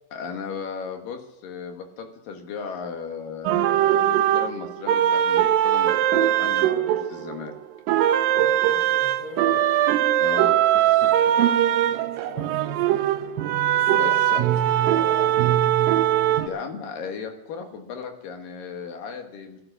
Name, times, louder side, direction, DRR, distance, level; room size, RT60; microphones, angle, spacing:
voice 1, 0.1-7.6 10.2-11.5 13.8-14.4 16.5-19.6, left 6 dB, 70° left, 5 dB, 3.1 m, -36 dB
sound 1, 3.5-7.5 7.9-16.5, right 11 dB, 80° right, 2.2 m, -21 dB
voice 2, 8.3-9.7 11.8-13.1 13.7-15.4, left 3 dB, 45° left, -1 dB, 7.4 m, -41 dB
14.5 x 11.5 x 6.9 m, 0.89 s
omnidirectional pair, 4.3 m